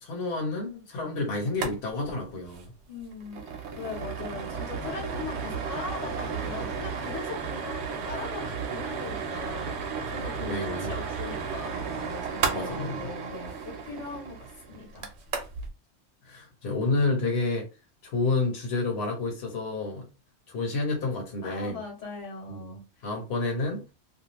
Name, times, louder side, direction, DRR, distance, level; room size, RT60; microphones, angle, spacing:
voice 1, 0.0-2.7 10.4-10.9 12.5-13.0 16.2-17.6 18.0-20.0 20.5-21.8 22.5-22.7 23.0-23.8, left 3 dB, 60° left, 1.1 m, -29 dB
sound 1, 1.5-1.8 2.0-2.1 2.4-2.6 3.0-15.7, right 5 dB, 65° right, 0.9 m, -33 dB
voice 2, 2.9-9.8 10.1-15.1 16.9-17.2 21.4-22.9, left 5 dB, 85° left, 1.4 m, -40 dB
2.7 x 2.3 x 2.9 m
omnidirectional pair, 1.2 m